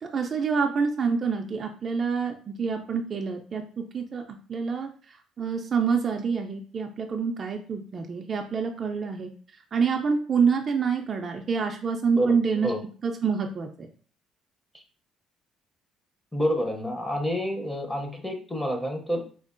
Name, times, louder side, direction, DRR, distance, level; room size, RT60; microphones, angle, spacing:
voice 1, 0.0-9.3 9.7-12.7 13.0-13.9, right 5 dB, 35° right, 3 dB, 0.3 m, -27 dB
voice 2, 16.3-19.2, equal, 5° left, 3 dB, 0.6 m, -28 dB
4.3 x 2.3 x 2.5 m, 0.41 s
cardioid pair, 135°, 0 cm